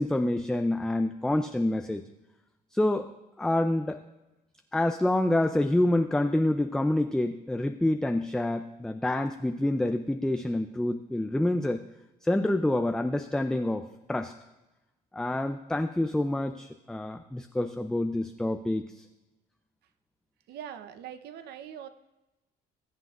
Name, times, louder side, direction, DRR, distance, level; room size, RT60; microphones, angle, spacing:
voice 1, 0.0-2.0 2.7-3.1 3.4-4.0 4.7-11.8 12.2-14.3 15.1-19.1, left 1 dB, 5° left, 7 dB, 0.4 m, -27 dB
voice 2, 20.5-21.9, right 9 dB, 75° right, 11 dB, 0.7 m, -42 dB
20.0 x 7.6 x 2.4 m, 1.0 s
cardioid pair, 110°, 17 cm